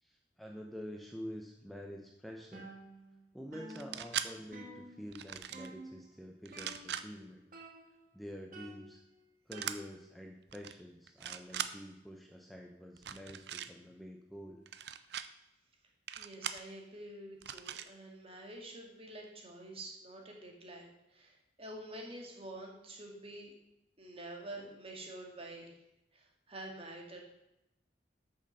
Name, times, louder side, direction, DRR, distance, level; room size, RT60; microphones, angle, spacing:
voice 1, 0.0-2.7 3.3-7.4 8.1-9.0 9.5-14.6, equal, ahead, 0 dB, 0.8 m, -47 dB
sound 1, 2.5-3.2 3.5-5.2 5.5-6.1 6.5-7.2 7.5-8.2 8.5-10.2, right 1 dB, 50° right, 1.9 m, -52 dB
sound 2, 3.7-4.3 5.1-5.7 6.4-7.0 9.5-9.8 10.5-10.7 11.1-11.7 13.0-13.7 14.7-15.3 16.1-16.6 17.4-17.9, right 9 dB, 65° right, 0.6 m, -40 dB
voice 2, 16.2-23.5 24.0-25.8 26.1-27.2, right 1 dB, 35° right, 1 dB, 2.2 m, -48 dB
9.0 x 6.6 x 6.7 m, 0.87 s
head